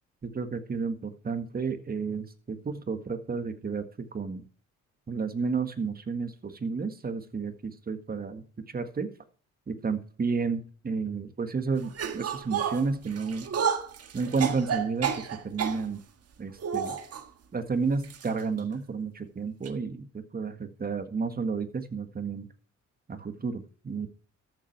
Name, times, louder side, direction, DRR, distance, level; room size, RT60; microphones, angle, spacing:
voice 1, 0.2-3.8 4.1-4.4 5.1-9.1 9.7-13.5 14.1-16.0 16.4-17.0 17.5-22.5 23.1-24.1, right 5 dB, 30° right, 8 dB, 1.7 m, -31 dB
sound 1, 11.9-15.8 16.6-17.2 18.0-18.3 18.6-18.7 19.6-19.7, right 7 dB, 55° right, 1.6 m, -31 dB
13.5 x 7.6 x 4.6 m, 0.39 s
cardioid pair, 90°, 30 cm